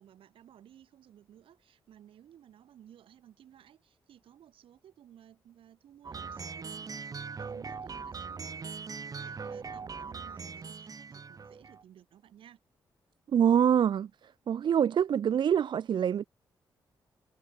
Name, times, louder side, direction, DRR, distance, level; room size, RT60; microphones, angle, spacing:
voice 1, 0.0-12.6, right 10 dB, 85° right, 6.1 m, -57 dB
sound 1, 6.0-11.8, right 5 dB, 45° right, 1.5 m, -41 dB
voice 2, 13.3-16.3, right 8 dB, 60° right, 0.4 m, -25 dB
cardioid pair, 75°, 9 cm